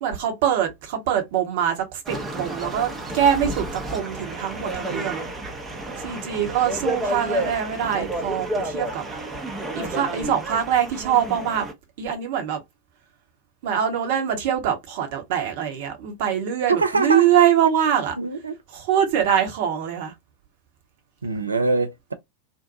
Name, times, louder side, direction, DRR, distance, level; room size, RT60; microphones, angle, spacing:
voice 1, 0.0-5.2 6.0-9.0 9.7-11.7 12.0-12.6 13.6-18.1 18.7-20.1, right 9 dB, 50° right, 0.9 m, -23 dB
sound 1, 2.1-11.7, right 1 dB, 15° right, 0.7 m, -31 dB
voice 2, 16.7-17.3 18.2-18.5 21.2-22.1, right 3 dB, 80° right, 0.5 m, -23 dB
2.6 x 2.1 x 2.6 m
figure-of-eight pair, 90°, 0 cm